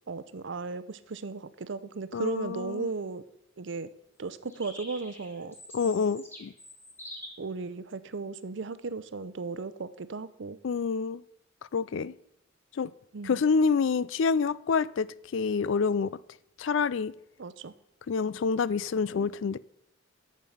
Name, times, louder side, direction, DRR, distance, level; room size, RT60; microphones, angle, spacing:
voice 1, 0.1-3.2 3.6-3.9 4.2-5.5 7.4-10.6 13.1-13.4 17.4-17.7, right 4 dB, 65° right, 0.6 m, -36 dB
voice 2, 2.1-2.9 5.7-6.5 10.6-11.2 11.7-12.1 12.7-12.9 13.2-15.1 15.3-16.1 16.6-17.1 18.1-19.6, left 5 dB, 70° left, 0.4 m, -27 dB
sound 1, 4.5-7.3, left 1 dB, 10° left, 2.4 m, -45 dB
10.5 x 7.4 x 5.6 m
head